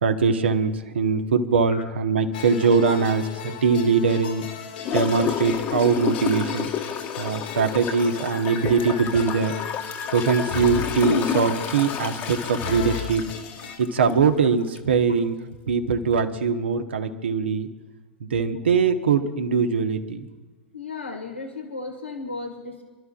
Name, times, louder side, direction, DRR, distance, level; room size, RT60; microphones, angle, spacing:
voice 1, 0.0-4.4 4.9-6.7 7.2-9.5 10.1-13.2 13.8-15.3 15.7-17.7 18.2-20.3, right 5 dB, 70° right, 6 dB, 1.4 m, -22 dB
sound 1, 2.3-13.8, left 7 dB, 60° left, 2.0 m, -36 dB
Gurgling / Toilet flush, 4.8-14.3 14.7-14.8, left 8 dB, 35° left, 1.3 m, -30 dB
voice 2, 20.7-22.8, left 3 dB, 85° left, 3 dB, 1.8 m, -35 dB
29.0 x 12.5 x 2.5 m, 1.3 s
figure-of-eight pair, 100°, 6 cm